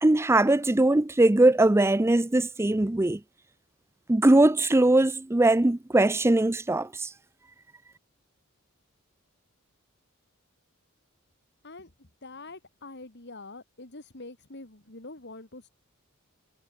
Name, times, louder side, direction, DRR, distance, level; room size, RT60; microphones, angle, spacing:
voice 1, 0.0-3.2 4.1-7.1, right 2 dB, 10° right, 0.4 m, -21 dB
voice 2, 11.6-15.7, left 2 dB, 50° left, 2.5 m, -45 dB
head